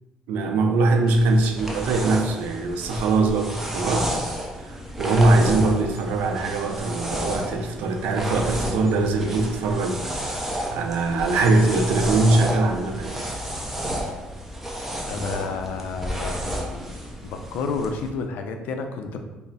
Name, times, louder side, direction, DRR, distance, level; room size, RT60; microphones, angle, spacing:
voice 1, 0.3-4.1 4.6-10.4 10.7-13.3, right 2 dB, 85° right, 4 dB, 0.5 m, -22 dB
sound 1, 1.1-18.1, equal, 10° right, 0.5 m, -31 dB
voice 2, 15.1-16.9 17.2-19.2, left 4 dB, 75° left, 6 dB, 0.4 m, -30 dB
3.3 x 2.0 x 3.9 m, 1.1 s
cardioid pair, 125°, 3 cm